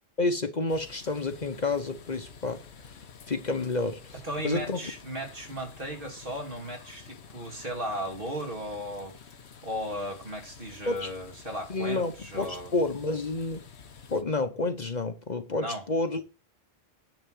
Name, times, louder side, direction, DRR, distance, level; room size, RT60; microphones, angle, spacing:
voice 1, 0.2-2.9 3.3-4.9 10.9-11.1 11.7-13.6 14.1-16.2, left 3 dB, 45° left, 1.0 m, -30 dB
sound 1, 0.7-14.2, left 6 dB, 90° left, 1.3 m, -50 dB
voice 2, 4.2-9.2 9.6-12.7 15.6-15.8, equal, 55° right, 3.0 m, -36 dB
10.5 x 4.2 x 7.7 m
omnidirectional pair, 1.1 m